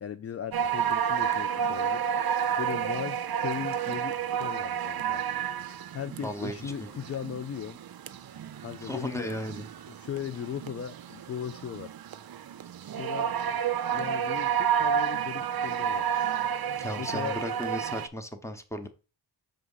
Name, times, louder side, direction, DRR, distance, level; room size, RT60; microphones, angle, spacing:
voice 1, 0.0-2.1 2.6-5.2 5.6-7.8 8.6-9.3 9.9-12.0 12.9-13.4 13.9-16.1 17.0-17.4, left 8 dB, 35° left, 0.4 m, -38 dB
sound 1, 0.5-18.1, right 8 dB, 50° right, 0.6 m, -31 dB
voice 2, 6.2-6.9 8.8-9.7 16.8-18.9, equal, 5° left, 0.9 m, -35 dB
5.0 x 3.6 x 5.5 m
cardioid pair, 65°, 49 cm